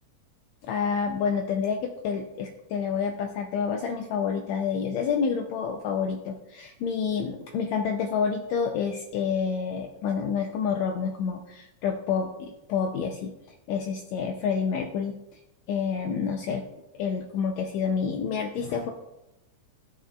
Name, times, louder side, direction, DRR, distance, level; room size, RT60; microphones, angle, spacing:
voice 1, 0.6-13.3 13.7-15.2 15.7-16.7 17.0-18.9, left 6 dB, 90° left, 4 dB, 1.5 m, -28 dB
12.5 x 6.6 x 2.2 m, 0.95 s
omnidirectional pair, 3.7 m